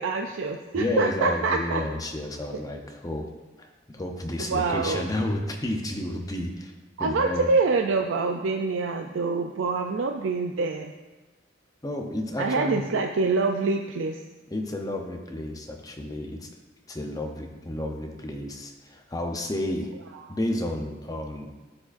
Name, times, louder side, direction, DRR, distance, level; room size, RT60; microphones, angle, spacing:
voice 1, 0.0-1.8 4.5-5.0 7.0-10.9 12.4-14.2 20.2-20.4, right 3 dB, 75° right, 3 dB, 0.4 m, -25 dB
voice 2, 0.7-3.3 3.6-3.7 3.9-6.7 7.0-7.5 11.8-12.8 14.5-16.5 16.9-19.9 20.3-21.5, left 1 dB, 20° left, 3 dB, 0.7 m, -31 dB
13.0 x 4.9 x 2.6 m, 1.2 s
head